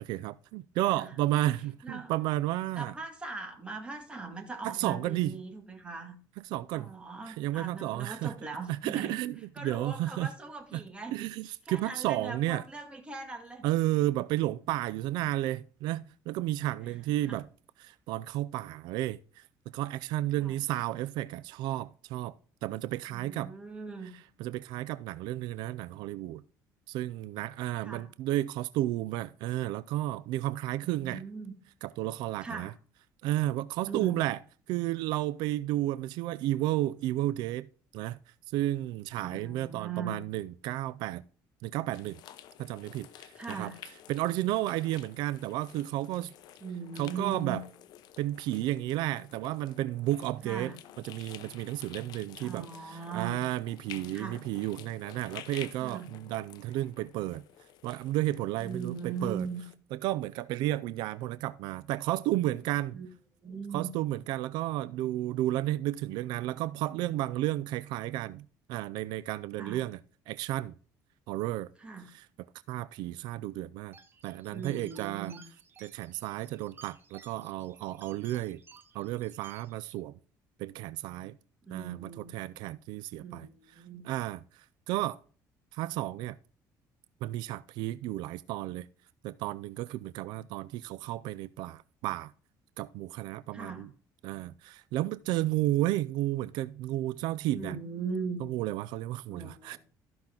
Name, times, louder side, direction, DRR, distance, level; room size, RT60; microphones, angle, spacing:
voice 1, 0.0-2.9 4.6-5.4 6.4-6.9 7.3-8.3 8.7-10.3 10.7-10.8 11.1-12.6 13.6-17.5 17.8-22.3 22.6-23.5 24.4-26.4 26.9-31.2 31.8-32.7 33.2-34.4 34.7-37.7 37.9-38.2 38.5-41.2 41.6-42.2 42.6-43.7 44.1-46.3 47.0-47.6 48.2-50.7 51.0-57.4 57.8-59.5 59.9-63.0 63.7-70.0 70.3-70.8 71.3-71.7 72.1-72.3 72.7-74.0 74.2-75.3 75.8-78.6 78.9-80.1 80.6-81.4 81.7-83.5 84.0-85.2 85.7-86.4 87.2-88.9 89.2-92.3 92.8-93.9 94.2-97.8 98.4-99.8, right 15 dB, 85° right, 0.3 m, -32 dB
voice 2, 1.8-2.1 2.8-6.2 6.7-9.2 9.5-11.3 11.7-13.7 16.8-17.0 17.2-17.4 20.4-20.6 23.1-24.1 27.8-28.1 30.8-31.5 32.4-32.7 33.9-34.2 39.2-40.2 43.4-43.8 46.6-47.6 50.4-50.8 52.4-53.5 54.1-54.4 55.8-56.1 58.6-59.6 62.9-63.1 63.4-63.9 69.6-69.8 71.8-72.1 74.5-75.4 81.6-82.3 83.2-84.0 93.5-93.9 97.5-98.4 99.3-99.8, right 5 dB, 15° right, 2.0 m, -40 dB
sound 1, 41.9-59.7, left 12 dB, 65° left, 0.7 m, -51 dB
sound 2, 73.9-79.9, right 5 dB, 30° right, 1.1 m, -56 dB
13.5 x 5.9 x 3.8 m
cardioid pair, 135°, 7 cm